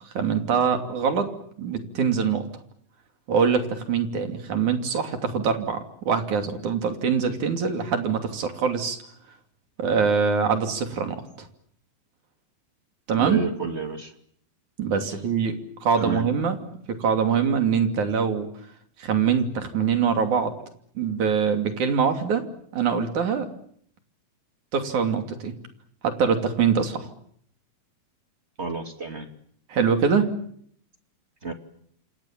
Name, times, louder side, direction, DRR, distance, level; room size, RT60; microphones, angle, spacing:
voice 1, 0.2-1.3 1.6-2.5 3.3-5.8 6.1-9.0 9.8-11.5 13.1-13.4 14.8-15.6 15.8-16.6 16.9-18.5 19.0-20.5 21.0-22.4 22.7-23.5 24.7-25.5 26.0-27.1 29.7-30.3, right 6 dB, 65° right, 6 dB, 4.2 m, -23 dB
voice 2, 13.1-14.1 16.0-16.2 28.6-29.3 31.4-31.5, right 3 dB, 20° right, 6 dB, 2.4 m, -30 dB
28.5 x 26.0 x 7.4 m, 0.66 s
omnidirectional pair, 3.7 m